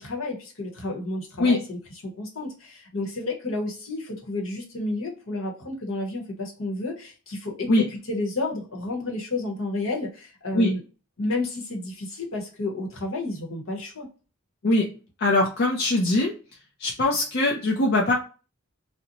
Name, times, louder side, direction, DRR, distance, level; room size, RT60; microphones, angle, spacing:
voice 1, 0.0-10.8 11.2-14.1, left 2 dB, 70° left, 0 dB, 1.0 m, -31 dB
voice 2, 15.2-16.3 16.8-18.2, left 2 dB, 50° left, -2 dB, 0.5 m, -21 dB
2.6 x 2.1 x 2.7 m, 0.35 s
head